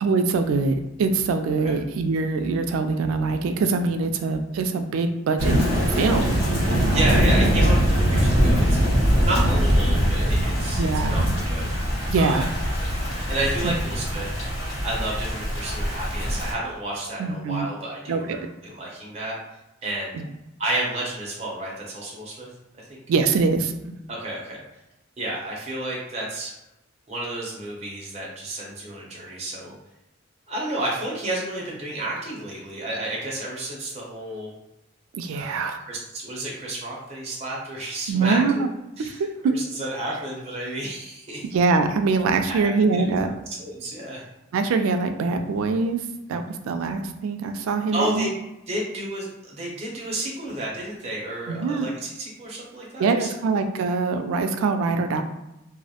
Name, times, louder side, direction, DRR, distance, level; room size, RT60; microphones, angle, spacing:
voice 1, 0.0-5.6 6.0-6.4 6.7-7.1 10.8-11.2 12.1-12.5 13.6-13.7 17.2-17.7 18.1-18.2 20.1-20.2 23.1-24.0 35.1-35.8 38.1-38.5 39.0-39.5 41.5-43.3 44.5-46.0 46.3-48.3 51.5-51.9 53.0-55.2, right 4 dB, 90° right, 7 dB, 0.3 m, -23 dB
Thunder / Rain, 5.4-16.5, equal, 80° left, 1.1 m, -22 dB
voice 2, 6.9-8.7 9.2-11.7 12.2-12.5 13.3-14.3 14.8-19.4 19.8-20.2 20.6-22.5 22.9-23.0 24.1-24.6 25.2-26.5 27.1-29.7 30.5-34.5 35.3-38.4 39.0-41.4 42.5-43.0 43.6-44.2 47.9-48.3 48.7-53.3, right 1 dB, 30° right, -4 dB, 0.6 m, -31 dB
2.3 x 2.0 x 2.8 m, 0.93 s
head